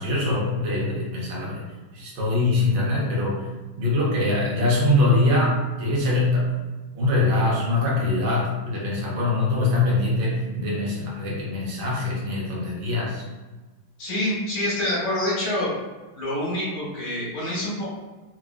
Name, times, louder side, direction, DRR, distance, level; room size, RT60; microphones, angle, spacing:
voice 1, 0.0-1.6 1.9-3.4 3.8-6.5 6.9-13.2, left 2 dB, 70° right, -4 dB, 1.7 m, -23 dB
voice 2, 14.0-15.7 16.1-17.9, left 1 dB, 85° left, -8 dB, 2.2 m, -26 dB
4.6 x 2.3 x 2.4 m, 1.2 s
omnidirectional pair, 2.3 m